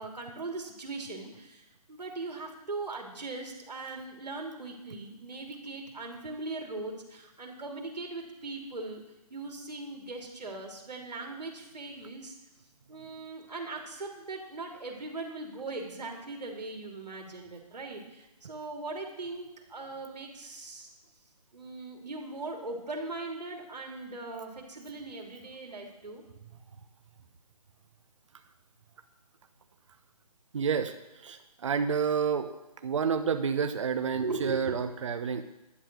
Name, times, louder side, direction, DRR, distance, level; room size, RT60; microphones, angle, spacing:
voice 1, 0.0-9.0 9.3-12.4 12.9-20.9 21.5-26.2 34.1-34.8, right 3 dB, 85° right, 2 dB, 3.4 m, -39 dB
voice 2, 30.5-32.5 32.8-35.4, right 6 dB, 50° right, 8 dB, 1.0 m, -29 dB
11.5 x 10.5 x 6.3 m, 0.96 s
hypercardioid pair, 160°, 20 cm